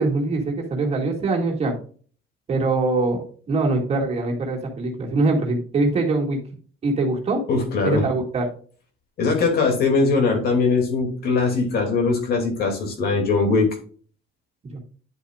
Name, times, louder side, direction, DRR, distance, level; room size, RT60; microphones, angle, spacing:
voice 1, 0.0-1.7 2.5-6.4 6.8-7.4 7.8-8.4 14.7-14.8, right 3 dB, 30° right, 0 dB, 2.3 m, -23 dB
voice 2, 7.5-8.0 9.2-13.7, left 4 dB, 50° left, 3 dB, 2.7 m, -21 dB
10.0 x 7.1 x 2.5 m, 0.43 s
cardioid pair, 150°, 20 cm